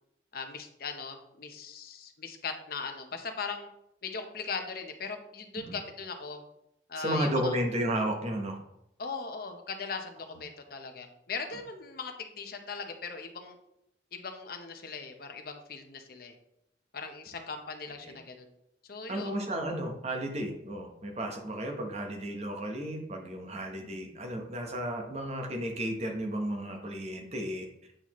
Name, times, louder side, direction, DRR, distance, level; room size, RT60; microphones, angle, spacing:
voice 1, 0.3-3.7 4.0-6.4 6.9-7.5 9.0-13.6 14.1-16.3 16.9-18.5 18.9-19.3, left 4 dB, 55° left, 5 dB, 0.8 m, -39 dB
voice 2, 7.0-8.6 18.0-18.1 19.1-27.6, right 1 dB, 35° right, 3 dB, 1.0 m, -33 dB
8.8 x 4.1 x 3.1 m, 0.80 s
head